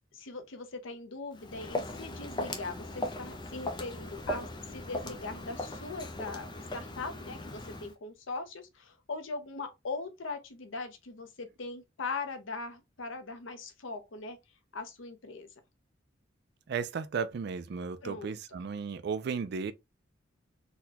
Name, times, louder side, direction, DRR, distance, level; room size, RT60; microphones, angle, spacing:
voice 1, 0.1-6.5 6.7-14.4 14.7-15.5 18.0-18.6, left 3 dB, 80° left, 0.7 m, -40 dB
Walk footsteps, 1.3-7.9, left 1 dB, 25° left, 0.5 m, -38 dB
voice 2, 16.7-19.7, right 6 dB, 55° right, 0.3 m, -34 dB
4.0 x 2.2 x 2.7 m
head